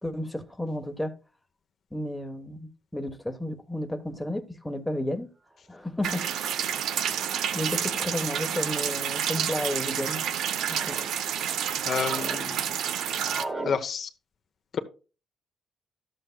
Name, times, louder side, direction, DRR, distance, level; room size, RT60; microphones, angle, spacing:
voice 1, 0.0-1.1 1.9-5.3 5.7-6.3 7.5-10.3 10.7-11.0, left 1 dB, 5° left, 1.2 m, -32 dB
sound 1, 5.7-5.8 6.8-7.1 8.0-8.4 9.3-9.7 10.3-11.1 11.5-12.4 12.7-13.7, right 2 dB, 30° right, 2.9 m, -39 dB
sound 2, 6.0-13.4, right 9 dB, 80° right, 0.7 m, -29 dB
voice 2, 11.8-12.7 13.6-14.1 14.7-14.8, left 6 dB, 55° left, 0.9 m, -29 dB
12.0 x 7.9 x 2.3 m
cardioid pair, 90°, 0 cm